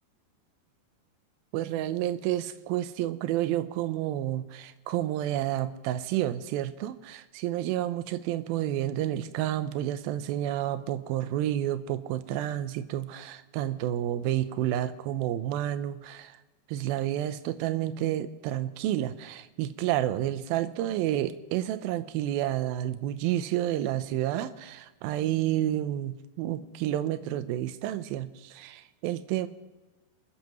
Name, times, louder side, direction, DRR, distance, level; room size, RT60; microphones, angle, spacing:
voice 1, 1.5-16.4 16.7-29.5, right 12 dB, 80° right, 12 dB, 2.5 m, -30 dB
28.0 x 14.5 x 3.1 m, 1.2 s
omnidirectional pair, 4.4 m